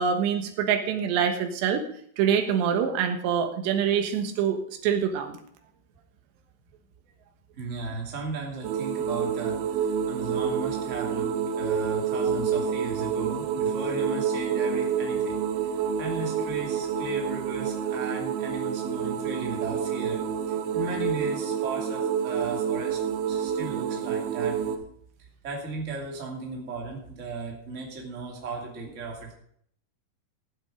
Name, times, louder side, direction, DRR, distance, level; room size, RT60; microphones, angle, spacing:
voice 1, 0.0-1.8 2.2-5.4, right 7 dB, 90° right, 5 dB, 3.5 m, -25 dB
voice 2, 7.5-24.8 25.2-29.3, right 3 dB, 20° right, 0 dB, 2.3 m, -36 dB
sound 1, 8.6-24.8, right 7 dB, 75° right, 2.8 m, -28 dB
15.5 x 8.2 x 5.1 m, 0.64 s
omnidirectional pair, 4.8 m